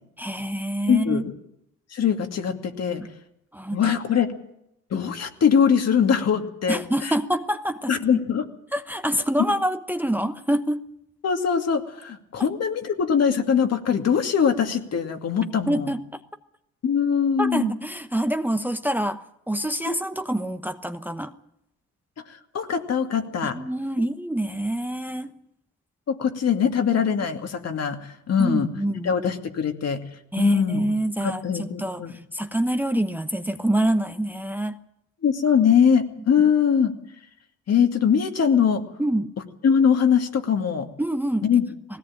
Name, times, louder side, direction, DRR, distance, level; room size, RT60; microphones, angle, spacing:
voice 1, 0.2-1.2 3.5-4.0 6.7-8.0 8.7-10.8 15.7-16.2 17.4-21.3 23.4-25.3 28.4-29.2 30.3-34.8 39.0-39.3 41.0-41.4, right 1 dB, 5° right, 9 dB, 1.0 m, -26 dB
voice 2, 0.9-1.2 1.9-3.0 3.7-4.3 4.9-7.1 7.9-8.4 11.2-15.9 16.8-17.7 19.9-20.0 22.5-23.6 26.1-28.7 29.0-30.0 30.4-30.9 31.2-32.2 35.2-36.9 37.7-38.8 39.6-40.9 41.4-41.7, left 7 dB, 55° left, 5 dB, 2.5 m, -22 dB
19.5 x 17.0 x 8.8 m, 0.81 s
cardioid pair, 90°, 30 cm